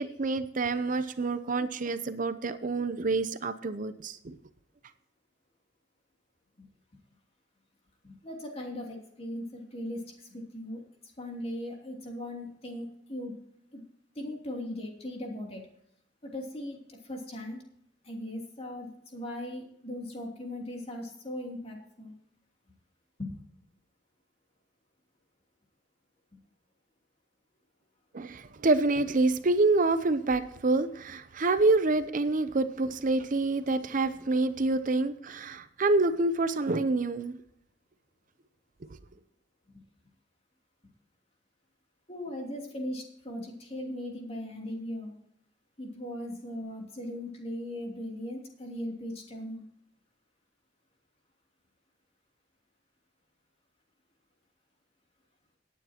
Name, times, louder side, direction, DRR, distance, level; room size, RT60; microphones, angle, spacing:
voice 1, 0.0-4.4 28.1-37.4, right 3 dB, 45° right, 11 dB, 0.6 m, -27 dB
voice 2, 8.0-13.3 13.7-13.8 14.1-15.6 16.2-17.6 18.0-22.1 23.2-23.4 39.7-39.8 42.1-45.2 45.8-49.6, left 1 dB, 35° left, 0 dB, 2.8 m, -39 dB
18.0 x 9.2 x 2.9 m, 0.73 s
head